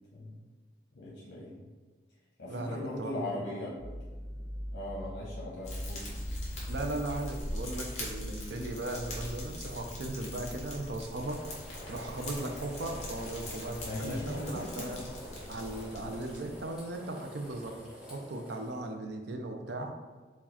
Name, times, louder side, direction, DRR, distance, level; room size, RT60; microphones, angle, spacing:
voice 1, 0.9-1.5 2.4-3.7 4.7-6.0 13.8-14.9, left 1 dB, 75° left, -6 dB, 0.8 m, -38 dB
voice 2, 2.5-3.5 6.7-11.4 11.9-15.0 15.5-19.9, right 2 dB, 70° right, 4 dB, 0.5 m, -37 dB
sound 1, 3.8-10.9, equal, 35° right, 1.2 m, -42 dB
Fire, 5.6-16.8, left 1 dB, 40° left, 1.0 m, -42 dB
sound 2, 11.2-18.9, equal, 5° right, 0.9 m, -48 dB
4.7 x 2.3 x 4.1 m, 1.4 s
head